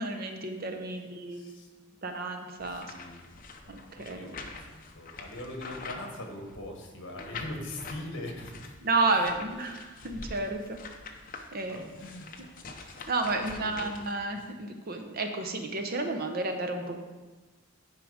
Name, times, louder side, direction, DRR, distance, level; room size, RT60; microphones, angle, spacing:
voice 1, 0.0-1.5 2.0-2.9 3.7-3.8 4.0-4.2 8.8-10.8 11.5-11.8 13.1-17.0, right 3 dB, 45° right, 5 dB, 0.8 m, -31 dB
voice 2, 1.3-1.7 2.5-3.3 4.0-8.7 9.1-9.4 10.0-10.3 11.7-12.3 13.5-14.0 14.3-14.4, left 1 dB, 60° left, 2 dB, 1.6 m, -42 dB
sound 1, 2.6-6.6 7.2-8.0 8.4-14.5, left 4 dB, 40° left, 0.7 m, -45 dB
10.5 x 4.9 x 5.0 m, 1.3 s
head